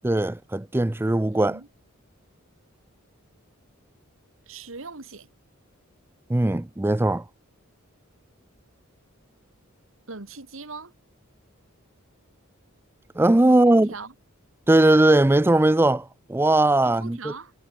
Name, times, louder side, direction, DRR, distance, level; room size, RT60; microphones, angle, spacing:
voice 1, 0.0-1.6 6.3-7.2 13.2-13.9 14.7-17.3, right 1 dB, 10° right, 0.4 m, -19 dB
voice 2, 1.3-1.7 4.5-5.3 10.1-10.9 13.7-14.1 16.8-17.5, right 4 dB, 65° right, 1.9 m, -40 dB
head